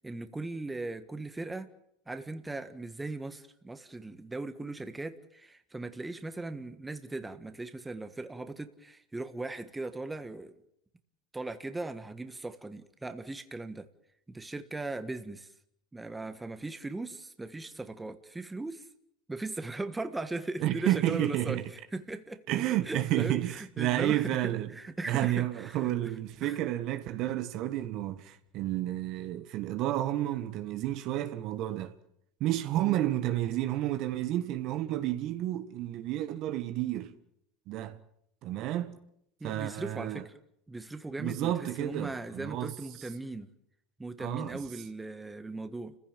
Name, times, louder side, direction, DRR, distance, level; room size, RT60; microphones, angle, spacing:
voice 1, 0.0-1.7 2.1-10.6 11.3-13.9 14.3-15.5 15.9-18.9 19.3-21.6 21.9-22.4 22.9-25.9 26.4-26.6 32.8-33.0 39.4-40.3 40.7-43.5 44.0-46.0, right 2 dB, 10° right, 1.6 m, -38 dB
voice 2, 20.6-21.6 22.5-24.7 25.1-31.9 32.4-37.1 37.7-38.0 38.4-39.0 39.4-40.2 41.2-42.7 44.2-44.6, right 14 dB, 55° right, 1.6 m, -31 dB
30.0 x 15.5 x 7.5 m
hypercardioid pair, 95°, 0 cm